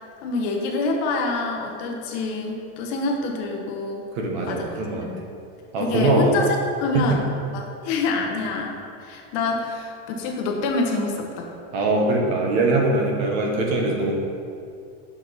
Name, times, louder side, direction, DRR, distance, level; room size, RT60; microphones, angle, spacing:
voice 1, 0.2-4.1 4.5-4.7 5.0-5.2 5.8-7.3 7.5-11.5, left 3 dB, 40° left, 1 dB, 0.9 m, -26 dB
voice 2, 4.1-5.1 5.7-6.4 6.9-7.2 11.7-14.2, right 2 dB, 60° right, 0 dB, 1.2 m, -22 dB
5.6 x 5.1 x 4.1 m, 2.4 s
supercardioid pair, 170°, 37 cm